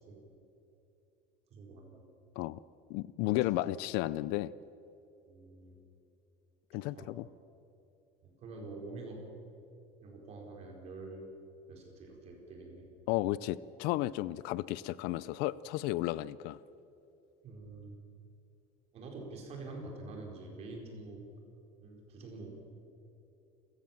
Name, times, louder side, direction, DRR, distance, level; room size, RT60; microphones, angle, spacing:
voice 1, 1.5-2.0 3.2-3.5 5.3-5.8 6.7-7.1 8.2-9.2 10.0-11.3 11.7-12.9 17.4-18.0 18.9-21.2 21.8-22.5, right 3 dB, 35° right, 1 dB, 4.4 m, -46 dB
voice 2, 2.9-4.5 6.7-7.2 13.1-16.6, left 16 dB, 65° left, 19 dB, 0.5 m, -33 dB
28.5 x 15.5 x 7.3 m, 2.8 s
cardioid pair, 180°, 18 cm